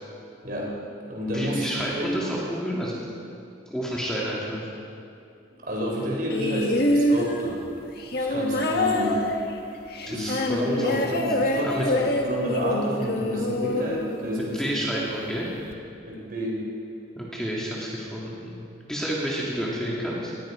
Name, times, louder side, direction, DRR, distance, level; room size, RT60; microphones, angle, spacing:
voice 1, 0.4-0.7 1.1-1.7 2.0-2.2 5.6-7.6 8.1-9.3 9.8-15.1 16.0-16.6, equal, 45° right, -2 dB, 4.2 m, -30 dB
voice 2, 1.3-3.2 3.7-4.7 10.1-11.1 11.6-11.9 14.3-15.5 17.2-20.3, equal, 5° left, -5 dB, 2.0 m, -30 dB
sound 1, 6.3-14.7 15.7-15.8, left 1 dB, 50° left, 1.5 m, -26 dB
18.5 x 16.0 x 4.9 m, 2.5 s
head